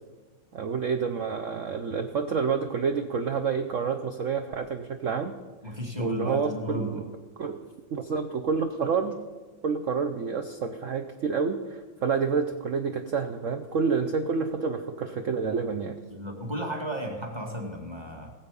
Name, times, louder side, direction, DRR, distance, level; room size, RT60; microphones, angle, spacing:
voice 1, 0.5-5.3 6.0-7.1 7.4-7.6 7.9-9.2 9.6-16.0, right 5 dB, 75° right, 7 dB, 0.7 m, -28 dB
voice 2, 5.6-7.0 16.1-18.3, equal, 15° right, 0 dB, 1.9 m, -34 dB
20.0 x 7.6 x 5.3 m, 1.3 s
omnidirectional pair, 2.2 m